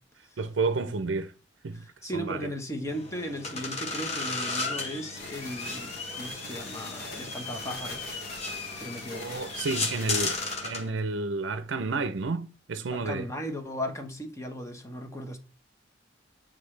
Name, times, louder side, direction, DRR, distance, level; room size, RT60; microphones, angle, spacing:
voice 1, 0.4-1.3 1.6-2.4 9.1-13.3, right 3 dB, 75° right, 0.6 m, -31 dB
voice 2, 1.7-8.1 8.7-9.4 12.9-15.4, equal, 15° left, 1.0 m, -37 dB
sound 1, 2.9-10.9, left 3 dB, 35° left, 1.3 m, -35 dB
sound 2, 5.2-10.6, left 3 dB, 55° left, 1.4 m, -44 dB
9.2 x 3.7 x 3.3 m
head